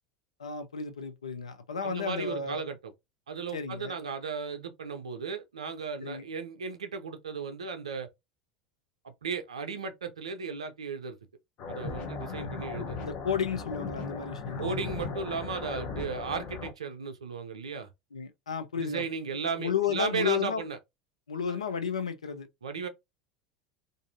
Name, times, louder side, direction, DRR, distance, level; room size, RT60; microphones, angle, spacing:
voice 1, 0.4-2.6 3.5-3.9 6.0-6.3 12.4-12.5 13.0-14.8 18.1-19.0 19.6-20.6 21.3-22.5, left 7 dB, 80° left, 0.5 m, -32 dB
voice 2, 1.8-2.9 3.3-8.1 9.0-11.2 11.7-13.0 14.6-17.9 18.8-20.8 21.5-21.6 22.6-22.9, right 5 dB, 80° right, 0.5 m, -35 dB
sound 1, 11.6-16.7, left 5 dB, 50° left, 0.8 m, -37 dB
2.6 x 2.5 x 2.6 m
figure-of-eight pair, 80°, 3 cm